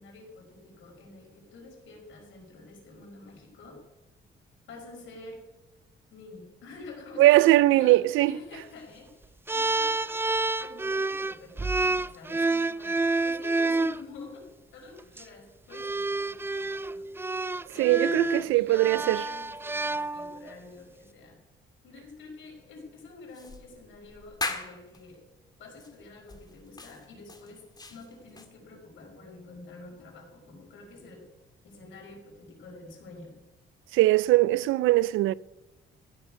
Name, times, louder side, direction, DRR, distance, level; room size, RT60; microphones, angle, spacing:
voice 1, 0.0-3.8 4.7-5.4 6.1-7.4 7.7-10.2 10.6-17.1 17.7-21.4 21.8-25.2 25.6-31.3 31.6-33.5, left 3 dB, 75° left, 5.6 m, -48 dB
voice 2, 7.2-8.4 17.8-19.2 33.9-35.3, right 17 dB, 85° right, 0.4 m, -21 dB
sound 1, 9.5-14.0 15.0-15.2 15.7-20.5, right 2 dB, 10° right, 0.4 m, -29 dB
sound 2, 23.3-25.0 25.8-26.0 26.3-28.5, left 3 dB, 20° left, 1.9 m, -38 dB
15.5 x 6.9 x 9.7 m
cardioid pair, 90°, 20 cm